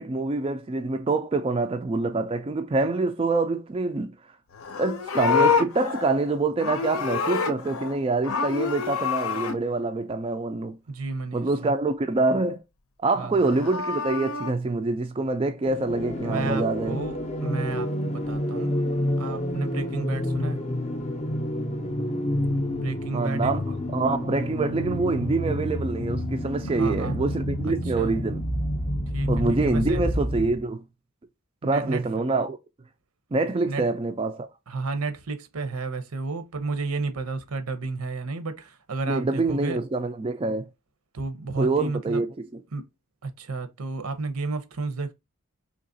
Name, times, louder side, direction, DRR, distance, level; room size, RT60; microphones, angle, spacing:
voice 1, 0.0-4.1 4.8-10.8 11.3-12.6 13.0-17.0 23.1-23.6 23.9-28.4 29.3-30.8 31.6-32.6 33.3-34.5 39.1-40.7 41.6-42.3, right 3 dB, 25° right, 0.3 m, -25 dB
Livestock farm animals working animals, 4.5-8.0 8.2-9.6 13.3-14.5, left 6 dB, 75° left, 0.6 m, -27 dB
voice 2, 10.9-11.7 13.2-13.5 16.2-18.8 19.2-20.6 22.7-23.5 26.8-27.2 28.0-28.1 29.1-30.0 31.6-32.0 33.6-33.9 34.7-39.8 41.1-42.2 42.7-42.9 43.2-45.1, right 3 dB, 85° right, 0.7 m, -32 dB
sound 1, 15.7-30.6, equal, 30° left, 0.5 m, -29 dB
3.9 x 2.9 x 2.6 m
head